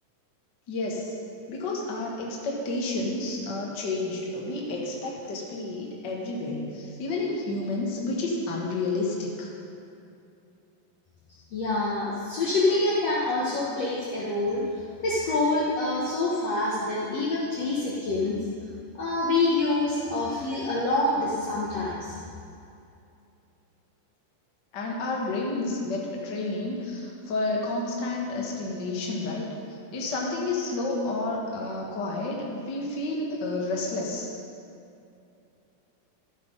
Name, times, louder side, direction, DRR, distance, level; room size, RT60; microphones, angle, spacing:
voice 1, 0.7-1.2 1.5-9.5 24.7-29.5 29.9-34.3, left 2 dB, 45° left, -2 dB, 1.6 m, -30 dB
voice 2, 11.5-14.6 15.0-18.4 19.0-22.2, left 2 dB, 60° left, -6 dB, 1.9 m, -26 dB
13.0 x 8.0 x 5.4 m, 2.6 s
omnidirectional pair, 4.2 m